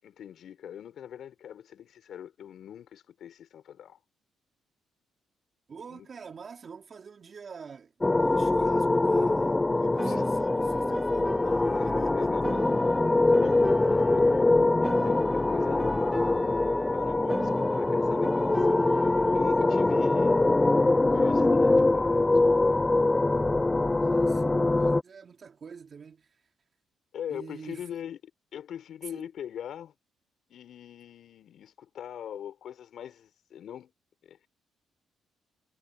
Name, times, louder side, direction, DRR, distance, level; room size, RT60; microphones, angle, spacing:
voice 1, 0.0-4.0 5.9-6.1 10.0-10.2 11.6-12.7 13.4-14.5 14.8-16.7 16.9-20.5 21.1-22.7 27.1-28.2 28.5-29.9 30.5-33.9 34.2-34.5, left 9 dB, 65° left, 6.1 m, -42 dB
voice 2, 5.7-12.4 24.0-26.4 27.3-27.9 29.1-29.3, right 6 dB, 45° right, 3.6 m, -46 dB
sound 1, 8.0-25.0, left 2 dB, 15° left, 0.4 m, -23 dB
Piano, 10.0-14.4 14.8-19.4, right 2 dB, 15° right, 1.2 m, -39 dB
cardioid pair, 90°, 0 cm